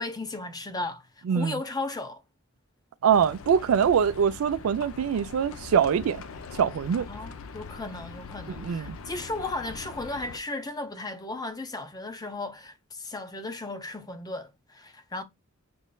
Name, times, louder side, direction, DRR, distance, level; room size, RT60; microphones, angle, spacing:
voice 1, 0.0-2.2 7.1-15.2, left 2 dB, 20° left, 0.6 m, -35 dB
voice 2, 1.3-1.6 3.0-6.2 6.6-7.1 8.6-9.0, right 7 dB, 85° right, 0.4 m, -23 dB
Livestock farm animals working animals, 3.1-10.4, left 5 dB, 80° left, 0.5 m, -42 dB
5.3 x 3.1 x 2.2 m
head